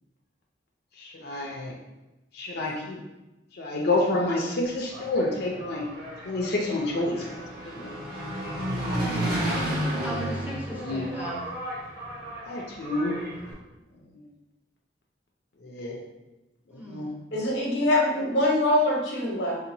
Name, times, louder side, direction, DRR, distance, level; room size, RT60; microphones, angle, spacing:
voice 1, 1.0-1.7 2.4-3.0 3.6-5.8 6.2-7.2 7.7-7.9 8.6-9.1 10.7-11.1 12.4-13.2 15.6-15.9 16.9-17.1, left 2 dB, 60° left, -1 dB, 0.6 m, -28 dB
Engine, 4.7-13.5, right 1 dB, 55° right, 1.3 m, -32 dB
voice 2, 9.0-9.4 10.0-11.4 16.7-17.1, right 1 dB, 10° right, -4 dB, 0.7 m, -37 dB
voice 3, 17.3-19.6, left 1 dB, 85° left, -2 dB, 1.0 m, -23 dB
3.7 x 2.9 x 2.6 m, 1.0 s
head